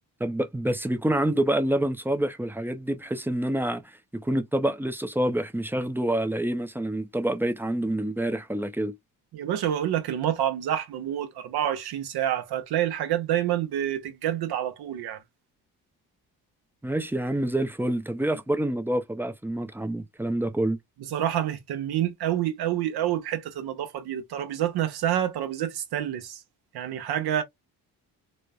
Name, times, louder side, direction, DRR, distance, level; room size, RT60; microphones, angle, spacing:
voice 1, 0.2-8.9 16.8-20.8, right 1 dB, 5° right, 0.5 m, -27 dB
voice 2, 9.3-15.2 21.1-26.4 26.7-27.4, right 11 dB, 75° right, 0.8 m, -28 dB
3.0 x 2.0 x 2.3 m
cardioid pair, 75°, 38 cm